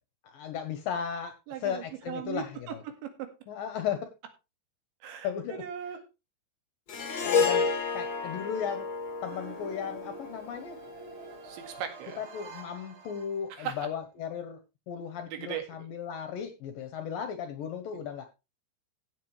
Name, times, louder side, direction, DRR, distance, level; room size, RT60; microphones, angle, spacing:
voice 1, 0.2-1.4 1.6-2.8 3.5-4.1 5.2-5.6 7.2-7.7 7.9-8.9 9.2-10.8 12.2-14.6 14.9-18.3, left 8 dB, 70° left, 8 dB, 2.2 m, -35 dB
voice 2, 1.5-3.3 5.0-6.0 7.1-7.4 11.4-12.2 13.5-13.9 15.2-15.7, right 9 dB, 80° right, 6 dB, 4.2 m, -38 dB
Harp, 6.9-11.3, left 5 dB, 55° left, 1.2 m, -31 dB
sound 1, 9.2-13.9, right 6 dB, 60° right, 5.8 m, -48 dB
16.0 x 7.6 x 3.2 m, 0.27 s
omnidirectional pair, 5.2 m